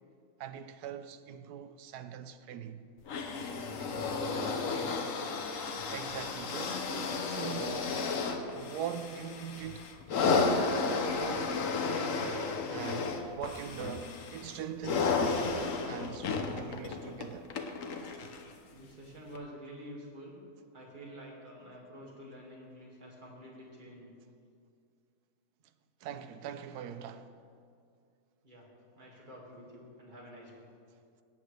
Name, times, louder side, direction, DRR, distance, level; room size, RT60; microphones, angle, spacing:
voice 1, 0.4-2.9 5.9-8.0 8.5-10.6 11.0-11.6 11.9-17.5 26.0-27.3, right 9 dB, 90° right, 1.1 m, -42 dB
sound 1, 3.1-18.5 19.3-19.4, left 4 dB, 60° left, 1.1 m, -33 dB
voice 2, 4.0-5.1 18.7-20.4 20.7-24.1 28.4-28.7 28.9-30.7, equal, 30° right, 2.1 m, -48 dB
17.5 x 8.9 x 3.2 m
omnidirectional pair, 1.6 m